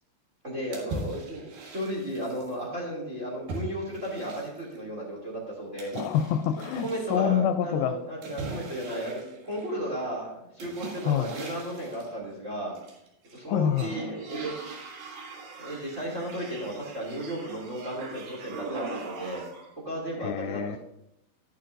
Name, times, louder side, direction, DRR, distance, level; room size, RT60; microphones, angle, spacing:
voice 1, 0.4-5.9 6.8-12.8 13.3-14.5 15.6-19.4 19.8-20.8, right 1 dB, 25° right, -3 dB, 2.3 m, -34 dB
sound 1, 0.7-2.5 3.5-4.8 5.8-7.2 8.2-9.9 10.6-12.1 12.8-13.4 13.7-19.7, right 3 dB, 75° right, 3.6 m, -40 dB
voice 2, 5.9-8.0 11.0-11.3 13.5-13.9 20.2-20.8, left 9 dB, 85° left, 9 dB, 2.3 m, -26 dB
11.5 x 10.5 x 2.6 m, 0.83 s
omnidirectional pair, 4.3 m